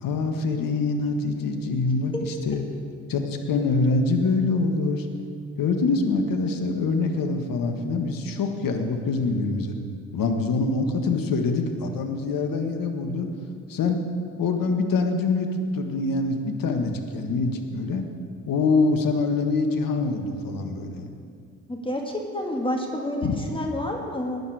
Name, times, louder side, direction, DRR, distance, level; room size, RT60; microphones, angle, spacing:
voice 1, 0.0-2.7 3.1-5.1 5.6-9.8 10.1-13.3 13.7-14.0 14.4-18.1 18.5-21.1 23.2-23.4, left 3 dB, 50° left, 5 dB, 1.6 m, -25 dB
voice 2, 21.7-24.4, left 1 dB, 10° left, 0 dB, 2.0 m, -29 dB
16.0 x 9.9 x 4.9 m, 2.3 s
hypercardioid pair, 55°, 42 cm